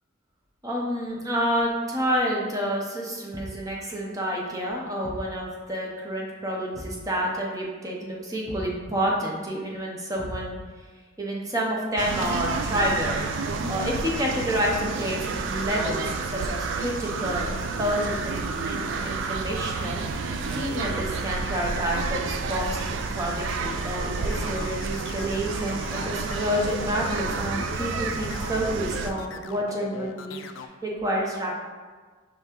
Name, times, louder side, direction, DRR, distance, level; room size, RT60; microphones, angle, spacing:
voice 1, 0.6-10.6 11.2-13.2 13.7-20.0 20.5-31.5, equal, 20° right, -2 dB, 0.6 m, -29 dB
Thump thud, 3.3-3.8 5.0-5.4 6.7-7.1 8.4-8.8 10.1-10.7, equal, 15° left, 0.8 m, -39 dB
sound 1, 12.0-29.1, right 4 dB, 80° right, 0.3 m, -30 dB
sound 2, 24.0-30.7, left 5 dB, 90° left, 0.3 m, -39 dB
5.3 x 3.3 x 2.9 m, 1.4 s
head